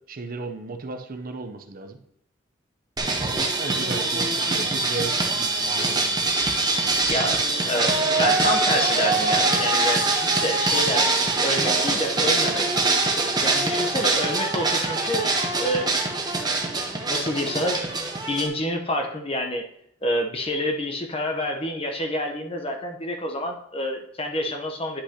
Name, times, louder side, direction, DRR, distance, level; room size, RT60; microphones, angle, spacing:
voice 1, 0.1-2.0 3.6-6.2, right 3 dB, 50° right, 7 dB, 0.6 m, -35 dB
sound 1, 3.0-18.5, right 3 dB, 20° right, 0.9 m, -23 dB
Gong, 6.1-14.5, equal, 85° left, 2.0 m, -40 dB
voice 2, 7.1-12.7 13.4-15.2 15.6-16.0 17.1-17.8 18.3-19.7 20.0-25.0, left 1 dB, 30° left, 3 dB, 0.8 m, -28 dB
10.0 x 5.5 x 2.9 m, 0.74 s
head